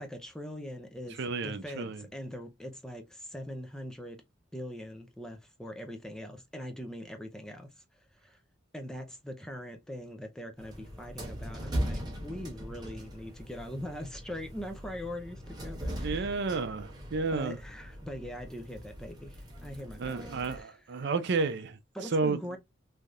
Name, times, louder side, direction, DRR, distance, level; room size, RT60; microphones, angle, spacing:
voice 1, 0.0-4.2 4.5-7.8 8.2-8.4 8.7-16.6 17.3-20.7 21.9-22.6, equal, 5° left, 0.5 m, -42 dB
voice 2, 1.2-2.0 16.0-17.6 20.0-21.8 22.1-22.4, right 4 dB, 60° right, 0.5 m, -31 dB
sound 1, 10.6-20.6, equal, 20° right, 1.0 m, -40 dB
3.3 x 2.7 x 2.3 m
head